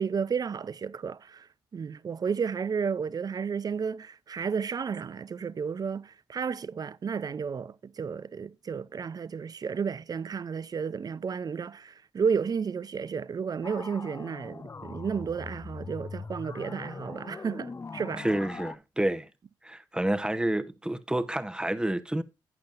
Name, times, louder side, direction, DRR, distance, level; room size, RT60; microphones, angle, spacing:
voice 1, 0.0-1.5 1.7-18.3, right 6 dB, 40° right, 0.5 m, -32 dB
sound 1, 13.6-18.8, left 4 dB, 30° left, 0.5 m, -41 dB
voice 2, 18.2-19.3 19.6-22.2, right 1 dB, 10° right, 0.9 m, -29 dB
12.0 x 8.7 x 2.5 m
cardioid pair, 65°, 10 cm